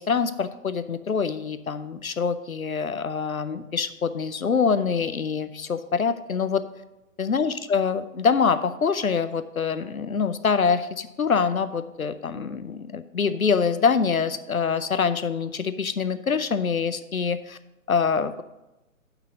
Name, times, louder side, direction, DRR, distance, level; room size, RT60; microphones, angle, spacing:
voice 1, 0.0-6.6 7.2-17.6 17.9-18.4, left 5 dB, 85° left, 13 dB, 0.6 m, -25 dB
5.8 x 5.8 x 6.7 m, 0.98 s
figure-of-eight pair, 130°, 41 cm